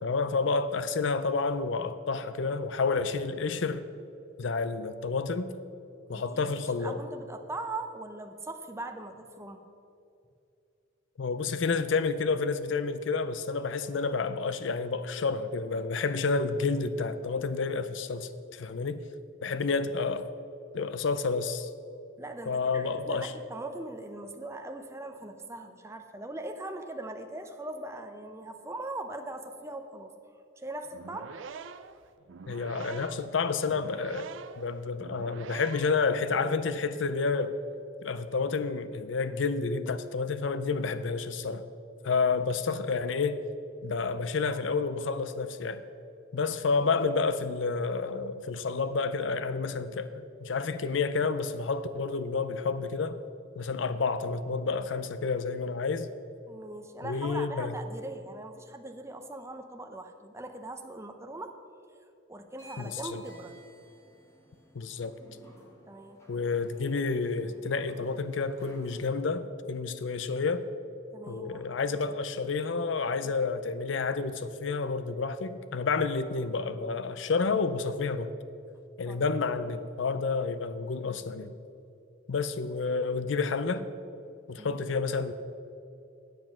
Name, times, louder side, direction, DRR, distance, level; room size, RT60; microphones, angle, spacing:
voice 1, 0.0-3.8 4.4-5.5 6.1-7.0 11.2-19.0 19.4-20.3 20.7-21.7 22.5-23.3 32.5-34.3 34.6-37.6 38.0-41.6 42.0-43.4 43.8-45.8 46.3-53.2 53.6-56.1 57.0-57.7 62.8-63.2 64.7-65.2 66.3-70.6 71.3-78.3 79.0-81.5 82.3-83.9 84.5-85.3, left 4 dB, 70° left, 0.5 m, -30 dB
voice 2, 6.1-9.6 22.2-30.1 30.6-31.3 56.5-61.6 62.3-63.6 65.9-66.2 71.1-72.0 79.1-79.3 84.6-84.8, right 2 dB, 15° right, 0.6 m, -40 dB
sound 1, 30.9-36.1, right 5 dB, 75° right, 0.4 m, -44 dB
sound 2, 62.5-69.1, right 1 dB, 15° left, 1.6 m, -55 dB
9.1 x 7.6 x 6.0 m
head